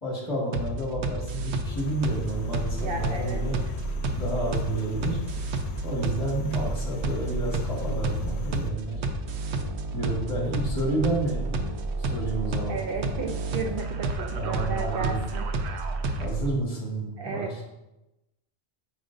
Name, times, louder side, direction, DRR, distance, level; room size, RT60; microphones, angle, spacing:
voice 1, 0.0-3.6 4.1-5.2 5.8-9.1 9.9-11.7 12.0-12.8 14.3-15.2 16.2-17.6, right 2 dB, 30° left, -3 dB, 1.6 m, -30 dB
sound 1, 0.5-16.5, right 3 dB, 85° right, 0.9 m, -30 dB
sound 2, 1.6-8.7, left 6 dB, 75° left, 0.9 m, -40 dB
voice 2, 2.7-3.4 12.7-15.5 17.2-17.6, right 4 dB, 65° right, 4 dB, 0.7 m, -34 dB
8.7 x 5.1 x 2.6 m, 0.98 s
omnidirectional pair, 1.1 m